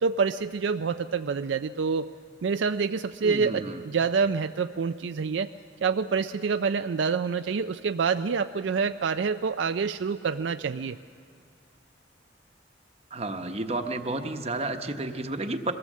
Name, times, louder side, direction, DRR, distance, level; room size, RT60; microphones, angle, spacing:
voice 1, 0.0-2.1 2.4-5.5 5.8-11.0, right 5 dB, 80° right, 9 dB, 0.4 m, -27 dB
voice 2, 3.2-3.8 13.1-15.7, right 2 dB, 35° right, 6 dB, 0.9 m, -31 dB
23.5 x 17.0 x 7.4 m, 2.2 s
head